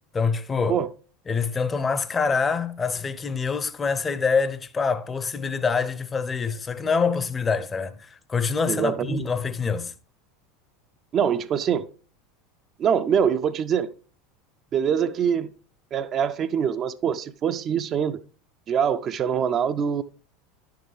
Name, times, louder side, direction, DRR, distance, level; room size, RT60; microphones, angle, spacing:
voice 1, 0.1-0.8 1.3-9.9, left 5 dB, 20° left, 0.6 m, -25 dB
voice 2, 8.7-9.3 11.1-11.9 12.8-13.9 14.7-15.5 15.9-18.2 18.7-20.0, right 8 dB, 35° right, 0.4 m, -24 dB
10.5 x 6.5 x 3.2 m
figure-of-eight pair, 75°, 0 cm